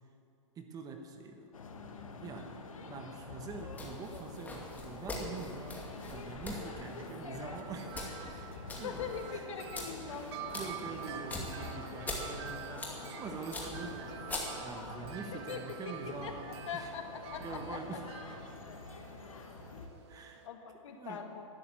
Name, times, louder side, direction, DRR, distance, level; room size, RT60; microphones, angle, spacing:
voice 1, 0.5-1.5 2.2-9.6 10.1-14.2 14.6-16.9 17.4-18.4 20.1-20.5 20.9-21.3, right 4 dB, 20° right, 5 dB, 1.3 m, -45 dB
sound 1, 1.5-19.9, left 3 dB, 90° left, 1.5 m, -47 dB
sound 2, 3.7-14.9, left 2 dB, 10° left, 2.2 m, -44 dB
Wind chime, 7.1-20.5, right 10 dB, 55° right, 0.8 m, -48 dB
voice 2, 8.8-10.4 15.3-15.6 15.9-16.0 16.2-16.3 16.7-17.8 19.7-19.9 20.4-21.5, left 6 dB, 65° left, 4 dB, 1.8 m, -42 dB
11.5 x 11.0 x 7.5 m, 2.5 s
hypercardioid pair, 125°, 17 cm